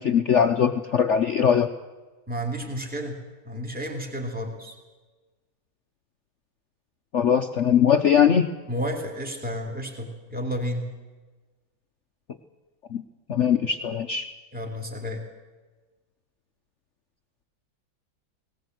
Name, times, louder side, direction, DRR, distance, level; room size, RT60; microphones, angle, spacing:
voice 1, 0.0-1.7 7.1-8.5 12.9-13.0 13.3-14.3, left 8 dB, 70° left, 6 dB, 0.7 m, -21 dB
voice 2, 2.3-3.2 3.4-4.7 8.7-10.9 14.5-15.3, equal, 5° right, 1 dB, 2.6 m, -31 dB
19.0 x 19.0 x 7.8 m, 1.3 s
omnidirectional pair, 2.2 m